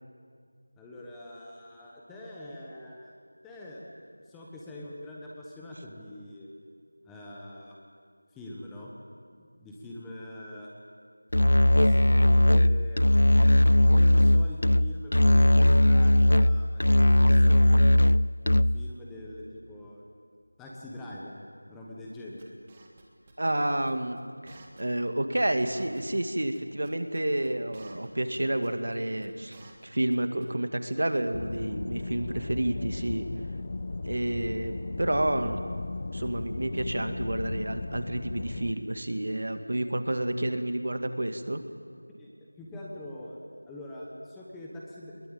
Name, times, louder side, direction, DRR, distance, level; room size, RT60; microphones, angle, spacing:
voice 1, 0.8-3.2 3.4-6.5 7.0-7.8 8.3-8.9 9.4-10.7 11.7-13.1 13.8-17.6 18.4-20.1 20.6-21.4 21.7-22.5 42.2-42.3 42.6-43.4 43.6-45.3, left 1 dB, 5° left, -4 dB, 1.1 m, -44 dB
Musical instrument, 11.3-18.9, left 1 dB, 85° left, 0.5 m, -19 dB
sound 1, 22.4-23.3 23.6-23.9 24.2-24.3 24.5-25.1 25.3-25.4 25.6-26.6 26.8-28.1 28.3-28.4 28.6-29.0 29.2-30.2 30.4-30.5, right 3 dB, 15° right, 1.9 m, -52 dB
voice 2, 23.4-29.6 29.8-33.3 34.1-35.6 36.1-41.6, right 1 dB, 65° right, 7 dB, 2.1 m, -30 dB
sound 2, 31.3-38.7, left 3 dB, 30° left, 0.6 m, -36 dB
21.5 x 20.5 x 9.0 m, 2.1 s
figure-of-eight pair, 175°, 0 cm